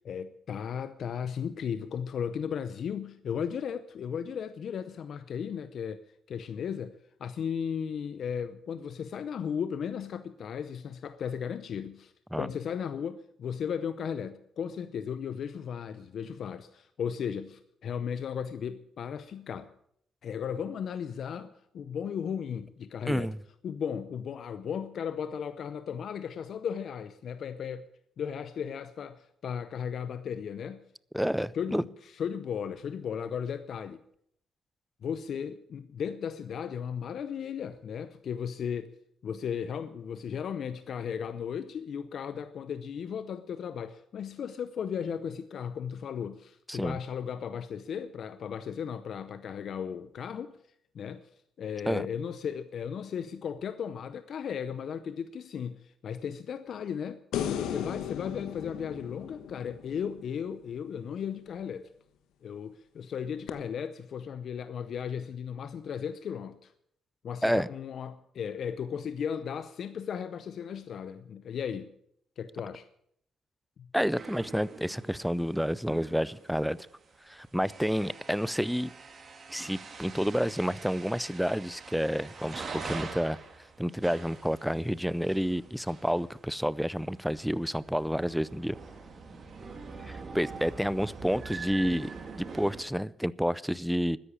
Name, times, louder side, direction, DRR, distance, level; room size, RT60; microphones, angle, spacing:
voice 1, 0.0-12.1 12.4-19.7 20.2-23.3 23.6-27.9 28.2-30.8 31.5-34.0 35.0-38.9 39.2-50.6 50.9-51.3 51.6-57.2 57.6-61.9 62.4-66.7 67.2-71.9 72.4-72.9 73.8-73.9, left 7 dB, 60° left, 0.7 m, -36 dB
voice 2, 23.1-23.4 31.1-31.8 46.7-47.0 51.9-52.0 67.4-67.7 73.9-76.8 77.3-78.9 79.5-83.4 83.8-88.8 90.0-92.1 92.4-94.2, equal, ahead, 0.5 m, -29 dB
sound 1, 57.3-60.7 63.5-63.6, left 9 dB, 85° left, 1.2 m, -35 dB
sound 2, 74.1-92.8, right 4 dB, 40° right, 2.8 m, -45 dB
13.0 x 10.0 x 8.7 m
cardioid pair, 90°, 0 cm